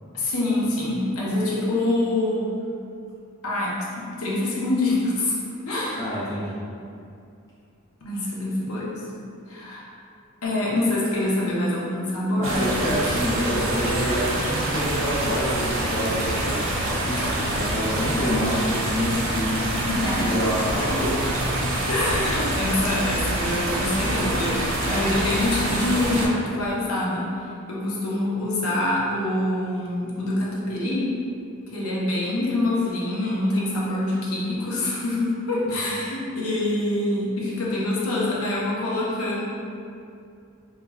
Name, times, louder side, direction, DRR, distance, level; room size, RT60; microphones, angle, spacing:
voice 1, 0.1-2.5 3.4-5.4 5.7-6.1 8.0-9.0 9.5-9.9 10.4-12.6 19.7-20.3 20.8-21.0 21.9-27.3 27.7-31.1 31.7-39.4, left 1 dB, 80° left, -5 dB, 0.6 m, -25 dB
voice 2, 6.0-6.6 12.4-19.6 20.2-21.1 21.4-21.5 35.7-35.9, equal, 15° left, -10 dB, 0.5 m, -27 dB
sound 1, 12.4-26.3, right 1 dB, 70° right, 0.4 m, -26 dB
2.3 x 2.1 x 3.2 m, 2.5 s
head